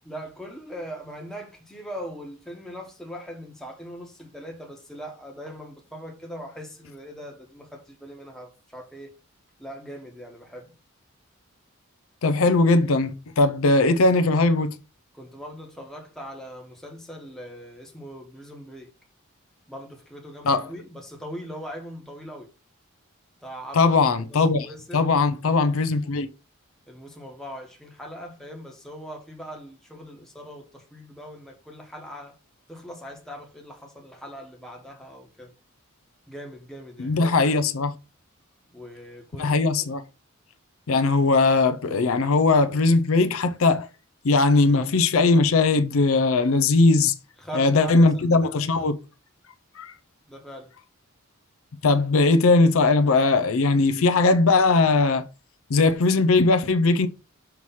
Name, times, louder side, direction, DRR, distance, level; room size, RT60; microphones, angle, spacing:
voice 1, 0.0-9.1 9.6-10.7 15.1-18.9 19.7-22.5 23.4-23.9 24.2-25.1 26.9-32.3 32.7-35.5 36.3-37.1 38.7-39.7 41.0-41.1 47.4-48.5 50.3-50.7, equal, ahead, 1.1 m, -40 dB
voice 2, 12.2-14.8 20.4-20.7 23.7-24.7 24.9-26.3 37.0-37.9 39.4-40.0 40.9-43.9 44.2-47.1 47.5-49.0 49.8-49.9 51.8-55.2 55.7-57.1, left 3 dB, 75° left, 0.5 m, -19 dB
5.8 x 3.1 x 5.5 m
head